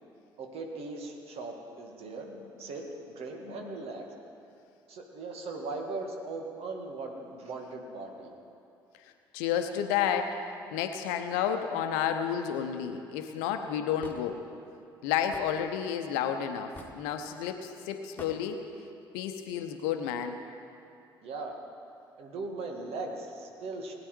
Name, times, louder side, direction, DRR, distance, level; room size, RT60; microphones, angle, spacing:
voice 1, 0.4-2.3 2.6-4.1 4.9-8.3 21.2-21.5 22.2-23.9, right 3 dB, 55° right, 2 dB, 2.0 m, -39 dB
voice 2, 2.0-2.4 3.4-3.8 9.0-10.4 10.7-14.4 15.0-18.7 19.1-20.4, left 8 dB, 65° left, 7 dB, 0.9 m, -31 dB
Hammer / Wood, 14.0-14.2 15.3-15.5 16.8-17.0 18.2-18.4, left 2 dB, 15° left, 1.8 m, -44 dB
19.0 x 9.8 x 4.6 m, 2.6 s
figure-of-eight pair, 50°, 12 cm